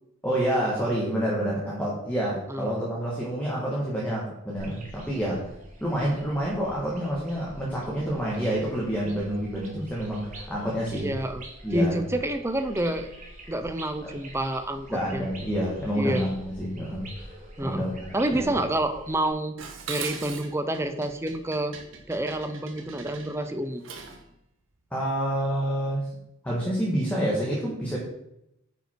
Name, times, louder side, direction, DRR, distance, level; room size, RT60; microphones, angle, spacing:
voice 1, 0.2-5.5 5.8-11.1 11.6-12.0 14.0-14.1 14.9-17.3 17.6-18.5 24.9-26.1 26.4-28.0, equal, 5° left, -5 dB, 1.6 m, -28 dB
sound 1, 4.6-19.3, right 1 dB, 40° right, 1.9 m, -46 dB
voice 2, 10.9-11.4 11.7-13.1 13.5-15.2 15.9-16.3 17.6-17.9 18.1-19.5 19.9-21.8 22.1-23.8, right 1 dB, 10° right, 8 dB, 0.6 m, -28 dB
Dishes pots and pans, 19.6-24.3, right 6 dB, 65° right, 1.2 m, -40 dB
9.2 x 5.5 x 4.6 m, 0.82 s
head